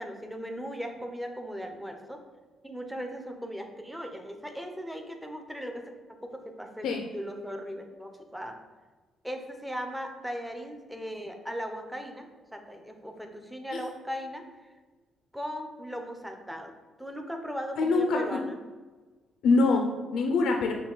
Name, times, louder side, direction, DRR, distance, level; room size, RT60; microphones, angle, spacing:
voice 1, 0.0-2.2 2.6-5.8 6.2-8.6 9.2-14.7 15.3-18.6, equal, 5° right, 4 dB, 0.6 m, -38 dB
voice 2, 17.8-18.4 19.4-20.7, left 3 dB, 75° left, 3 dB, 0.4 m, -24 dB
5.5 x 2.3 x 3.9 m, 1.3 s
cardioid pair, 90°, 0 cm